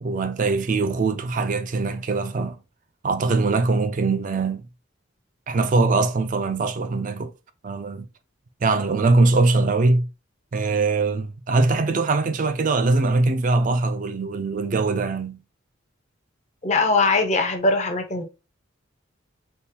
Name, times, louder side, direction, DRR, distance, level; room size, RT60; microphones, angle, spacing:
voice 1, 0.0-2.6 3.0-4.6 5.5-7.3 7.6-8.1 8.6-10.1 10.5-15.4, right 3 dB, 40° right, 0.4 m, -22 dB
voice 2, 16.6-18.2, left 3 dB, 35° left, 0.6 m, -21 dB
3.5 x 2.4 x 2.8 m
head